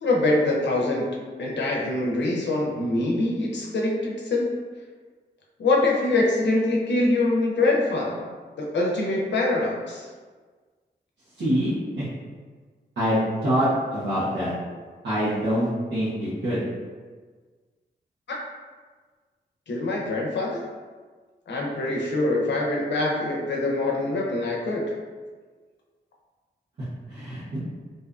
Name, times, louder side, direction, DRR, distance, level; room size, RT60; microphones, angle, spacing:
voice 1, 0.0-4.5 5.6-8.3 8.6-10.1 19.7-20.6 21.5-24.9, left 2 dB, 75° left, -2 dB, 0.6 m, -24 dB
voice 2, 11.4-12.1 13.0-14.5 15.0-16.6 27.1-27.6, equal, 80° right, -14 dB, 0.9 m, -25 dB
2.6 x 2.2 x 2.4 m, 1.4 s
cardioid pair, 50°, 18 cm